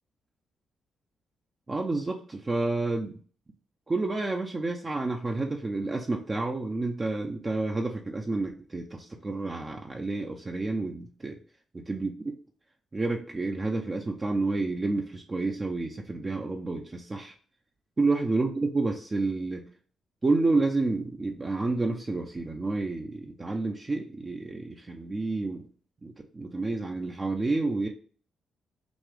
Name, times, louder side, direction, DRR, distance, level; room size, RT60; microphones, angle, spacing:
voice 1, 1.7-3.1 3.9-11.4 11.9-12.4 12.9-17.3 18.0-19.6 20.2-25.7 26.0-27.9, right 3 dB, 25° right, 1 dB, 0.6 m, -29 dB
6.1 x 2.3 x 3.4 m, 0.43 s
cardioid pair, 110°, 0 cm